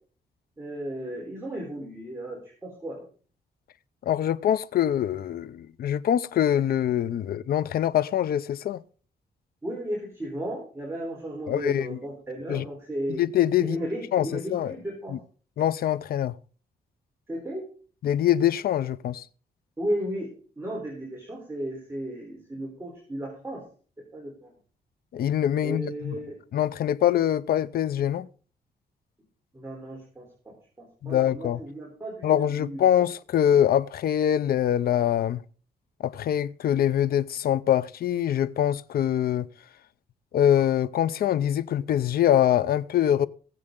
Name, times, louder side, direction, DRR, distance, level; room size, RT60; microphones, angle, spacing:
voice 1, 0.6-3.0 9.6-13.2 13.6-15.1 17.3-17.6 19.8-20.3 20.6-23.6 24.1-24.5 25.6-26.4 29.5-32.8, right 1 dB, 15° right, 3.7 m, -34 dB
voice 2, 4.1-8.8 11.5-12.0 12.5-12.6 13.2-13.8 14.1-14.8 15.1-15.2 15.6-16.3 18.0-19.2 25.1-26.1 26.5-28.3 31.0-31.6 32.2-35.4 36.0-39.5 40.3-43.3, left 10 dB, 65° left, 0.6 m, -24 dB
18.5 x 7.7 x 3.7 m
cardioid pair, 130°, 16 cm